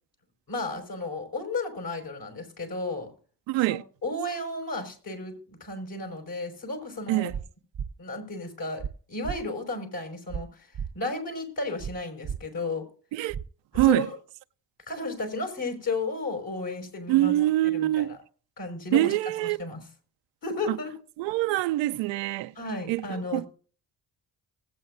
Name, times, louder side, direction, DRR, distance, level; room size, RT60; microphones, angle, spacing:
voice 1, 0.5-3.1 3.7-7.3 8.0-8.8 9.1-10.7 10.9-12.9 13.8-14.1 14.9-17.3 17.6-18.2 18.6-19.8 20.4-20.9 22.6-23.4, left 2 dB, 55° left, 5.6 m, -33 dB
voice 2, 3.5-3.8 7.1-7.4 13.1-13.4 13.7-14.1 17.1-18.2 18.9-19.6 20.7-20.8 21.2-22.5 22.9-23.5, right 16 dB, 90° right, 0.6 m, -24 dB
sound 1, 7.3-7.4 7.7-7.9 8.8-8.9 9.2-9.4 10.3-10.4 10.7-10.9 11.8-11.9 12.2-12.4 13.3-13.4 13.7-13.9, right 7 dB, 45° right, 0.7 m, -33 dB
20.0 x 8.5 x 2.6 m
supercardioid pair, 45°, 43 cm